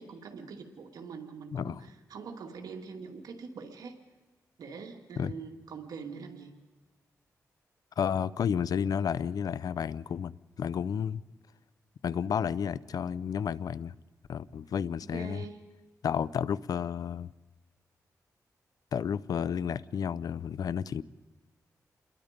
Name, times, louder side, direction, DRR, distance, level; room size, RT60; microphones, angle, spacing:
voice 1, 0.0-4.0 4.6-6.6 14.7-14.8 15.1-15.6, right 5 dB, 90° right, 2.4 m, -43 dB
voice 2, 8.0-11.2 12.0-13.9 14.3-15.4 16.0-17.3 18.9-21.0, left 7 dB, 75° left, 0.6 m, -31 dB
28.5 x 22.0 x 5.2 m
cardioid pair, 85°, 6 cm